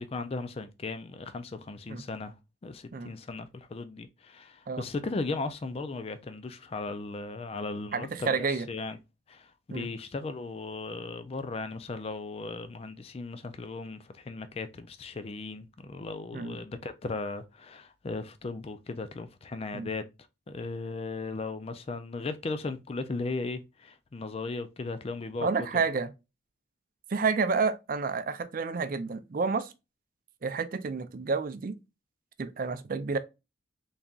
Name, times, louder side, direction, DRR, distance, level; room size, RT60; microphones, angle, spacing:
voice 1, 0.0-2.3 2.6-9.0 9.3-20.0 20.5-25.5 25.7-25.8, left 3 dB, 30° left, 0.4 m, -37 dB
voice 2, 7.9-8.7 9.7-9.9 16.3-16.6 19.7-19.9 25.4-26.1 27.1-29.7 30.4-31.7 32.4-33.2, right 4 dB, 45° right, 0.5 m, -29 dB
4.0 x 3.5 x 2.4 m
head